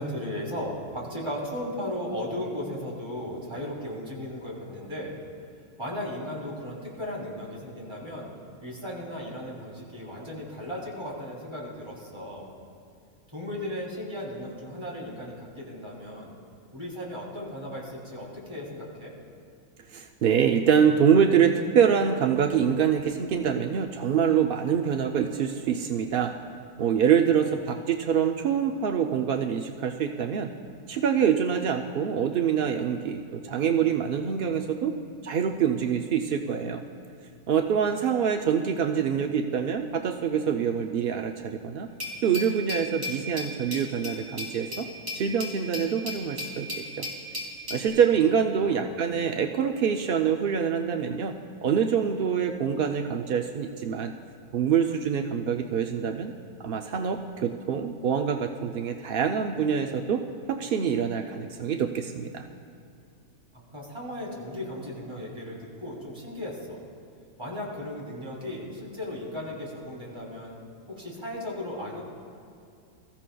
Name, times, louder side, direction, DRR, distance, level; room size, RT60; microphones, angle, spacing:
voice 1, 0.0-5.2 5.8-8.3 8.6-12.5 13.3-16.3 16.7-19.1 48.6-48.9 63.5-66.8 67.4-70.6 70.9-72.0, left 1 dB, 20° right, -5 dB, 3.1 m, -36 dB
voice 2, 19.9-26.3 26.8-30.5 30.9-34.9 35.2-36.8 37.5-41.9 42.2-44.9 45.1-47.0 47.7-51.3 51.6-54.1 54.5-56.3 56.6-60.2 60.5-62.4, right 7 dB, 65° right, 4 dB, 0.5 m, -25 dB
Glass, 42.0-47.9, left 1 dB, 40° right, 2.9 m, -36 dB
23.0 x 14.5 x 2.3 m, 2.4 s
omnidirectional pair, 1.6 m